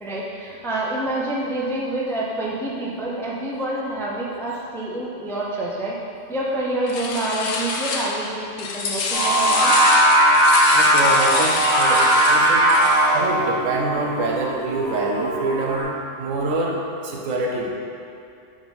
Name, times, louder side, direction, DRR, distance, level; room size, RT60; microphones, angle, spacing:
voice 1, 0.0-5.9 6.3-9.7, right 1 dB, 5° left, -4 dB, 0.3 m, -27 dB
sound 1, 6.9-8.3 8.6-13.2, left 3 dB, 90° left, 1.0 m, -26 dB
Singing, 9.1-15.8, right 1 dB, 40° right, 1.8 m, -18 dB
voice 2, 10.7-12.7 13.1-15.8 16.2-17.7, right 2 dB, 90° right, 0 dB, 1.1 m, -26 dB
5.2 x 3.6 x 5.3 m, 2.6 s
omnidirectional pair, 1.3 m